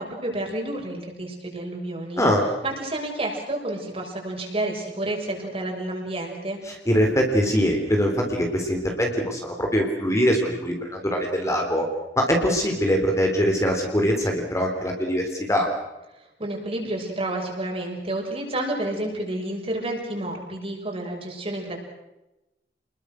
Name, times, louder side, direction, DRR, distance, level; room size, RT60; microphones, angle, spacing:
voice 1, 0.0-2.2 2.6-6.6 16.4-21.8, right 1 dB, 35° right, 1 dB, 6.5 m, -30 dB
voice 2, 6.7-11.9 12.2-15.7, equal, 15° left, 2 dB, 3.6 m, -23 dB
29.5 x 21.5 x 6.4 m, 0.97 s
head